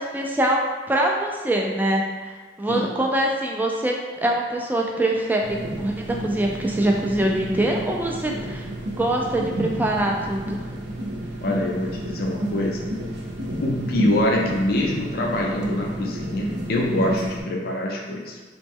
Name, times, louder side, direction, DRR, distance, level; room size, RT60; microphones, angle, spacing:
voice 1, 0.0-8.7 9.0-10.6, right 1 dB, 10° right, 0 dB, 0.3 m, -24 dB
sound 1, 5.4-17.4, right 1 dB, 60° right, 0.6 m, -31 dB
voice 2, 11.4-12.9 13.6-18.4, left 1 dB, 50° left, -1 dB, 0.4 m, -24 dB
3.0 x 3.0 x 3.5 m, 1.4 s
head